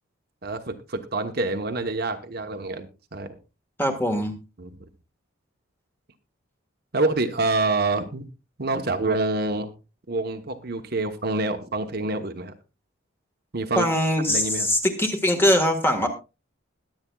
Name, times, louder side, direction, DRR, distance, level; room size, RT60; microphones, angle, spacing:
voice 1, 0.4-3.4 4.6-4.8 6.9-8.3 8.6-9.7 10.1-12.5 13.5-13.9 14.3-14.7, right 2 dB, 50° right, 6 dB, 1.0 m, -27 dB
voice 2, 3.8-4.3 13.7-16.1, left 1 dB, 10° left, 5 dB, 1.5 m, -22 dB
21.0 x 8.6 x 2.3 m, 0.29 s
head